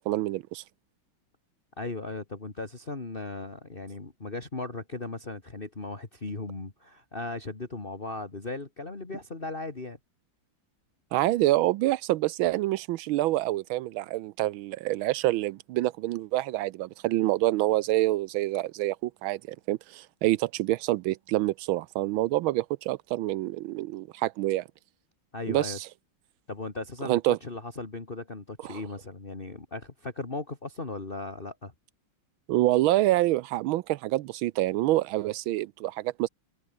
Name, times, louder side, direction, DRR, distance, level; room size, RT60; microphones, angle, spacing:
voice 1, 0.1-0.6 11.1-24.6 25.5-25.9 27.0-27.4 28.6-28.8 32.5-36.3, right 16 dB, 80° right, 1.4 m, -27 dB
voice 2, 1.8-10.0 25.3-25.8 26.5-31.7, left 3 dB, 25° left, 2.6 m, -37 dB
omnidirectional pair, 2.2 m